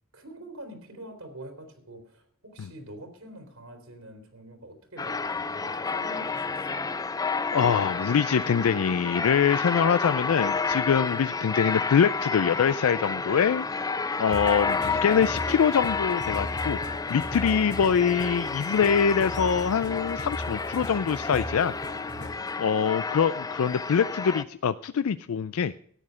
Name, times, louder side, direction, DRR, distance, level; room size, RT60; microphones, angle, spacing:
voice 1, 0.1-6.8 22.1-22.4, right 1 dB, 70° right, 5 dB, 3.2 m, -45 dB
sound 1, 5.0-24.4, left 4 dB, 15° left, 0.4 m, -30 dB
voice 2, 7.5-13.7 14.2-21.7 22.6-25.7, left 7 dB, 75° left, 14 dB, 0.4 m, -24 dB
sound 2, 14.3-22.5, equal, 50° left, 3.4 m, -38 dB
14.0 x 9.8 x 5.0 m, 0.63 s
head